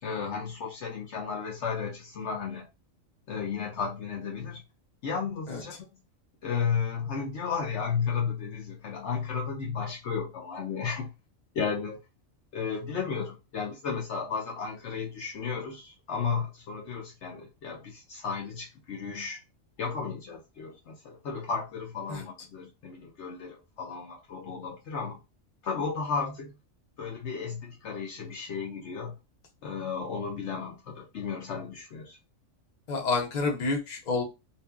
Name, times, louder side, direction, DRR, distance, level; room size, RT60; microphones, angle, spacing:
voice 1, 0.0-2.7 3.3-4.6 5.0-5.7 6.4-11.1 11.5-12.0 12.5-19.4 19.8-25.2 25.6-26.5 27.0-29.2 29.6-32.2, left 6 dB, 65° left, 0.9 m, -33 dB
voice 2, 32.9-34.2, left 3 dB, 40° left, 0.8 m, -28 dB
2.8 x 2.5 x 2.3 m
omnidirectional pair, 1.3 m